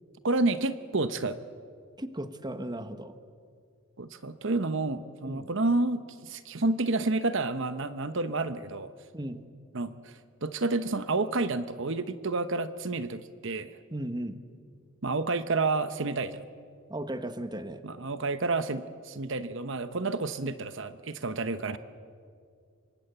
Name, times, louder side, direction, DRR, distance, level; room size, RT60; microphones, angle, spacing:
voice 1, 0.2-1.4 4.0-8.9 9.7-13.8 15.0-16.5 17.8-21.8, right 3 dB, 60° right, 11 dB, 0.9 m, -30 dB
voice 2, 2.0-3.1 5.2-5.5 9.1-9.4 13.9-14.4 16.9-17.8, right 1 dB, 20° right, 10 dB, 1.2 m, -36 dB
26.5 x 24.5 x 8.1 m, 2.2 s
head